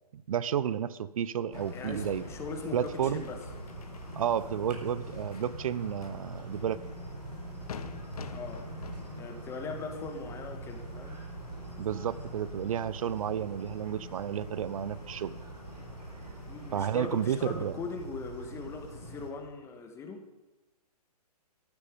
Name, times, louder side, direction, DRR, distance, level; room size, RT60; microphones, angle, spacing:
voice 1, 0.1-2.2 2.7-3.2 4.2-6.8 11.8-15.3 16.7-17.8, right 9 dB, 60° right, 17 dB, 0.8 m, -31 dB
sound 1, 1.5-17.7, left 7 dB, 65° left, 1.3 m, -48 dB
voice 2, 1.5-3.4 8.3-8.6 9.2-11.2 16.5-20.2, left 4 dB, 15° left, 5 dB, 1.6 m, -40 dB
sound 2, 1.5-19.3, right 2 dB, 90° right, 4.5 m, -44 dB
13.0 x 13.0 x 5.2 m, 1.1 s
hypercardioid pair, 145°, 20 cm